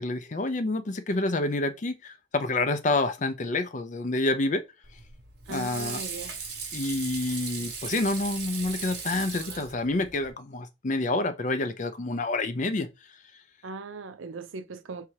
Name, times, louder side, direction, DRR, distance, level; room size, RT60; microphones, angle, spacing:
voice 1, 0.0-4.6 5.5-6.0 6.7-12.9, left 2 dB, 40° left, 0.5 m, -28 dB
Water / Sink (filling or washing), 4.8-10.3, right 5 dB, 60° right, 1.2 m, -38 dB
voice 2, 5.5-6.4 13.6-15.1, right 3 dB, 90° right, 0.5 m, -39 dB
3.4 x 2.8 x 4.6 m
head